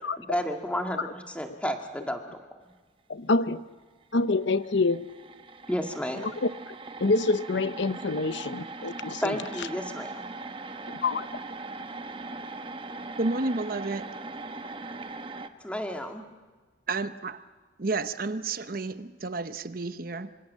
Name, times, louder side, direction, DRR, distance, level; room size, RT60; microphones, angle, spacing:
voice 1, 0.2-2.2 5.7-6.2 9.2-10.3 15.6-16.2, equal, 5° left, 4 dB, 2.0 m, -31 dB
voice 2, 3.1-3.6 4.1-5.1 6.1-9.7 11.0-11.3, left 3 dB, 70° left, 14 dB, 0.8 m, -27 dB
sound 1, 4.2-4.3 4.5-15.5, right 3 dB, 30° right, 1.1 m, -40 dB
voice 3, 13.2-14.1 16.9-17.4 17.8-20.3, right 3 dB, 50° right, 12 dB, 0.9 m, -31 dB
26.0 x 25.5 x 7.5 m, 1.4 s
head